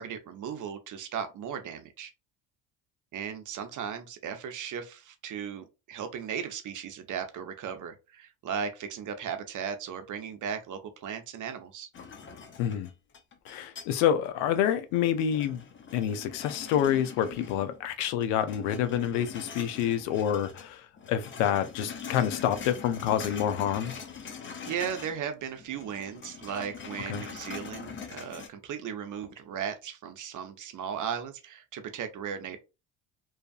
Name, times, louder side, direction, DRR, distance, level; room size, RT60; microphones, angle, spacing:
voice 1, 0.0-2.1 3.1-11.9 24.6-32.6, right 7 dB, 40° right, 0.7 m, -36 dB
sound 1, 11.9-14.3 14.7-17.9 18.2-20.7 21.0-25.3 25.5-28.5, left 6 dB, 25° left, 0.5 m, -43 dB
voice 2, 12.6-12.9 13.5-15.6 15.9-23.9 27.1-27.2, left 10 dB, 75° left, 0.6 m, -28 dB
2.6 x 2.4 x 2.3 m
supercardioid pair, 80°, 46 cm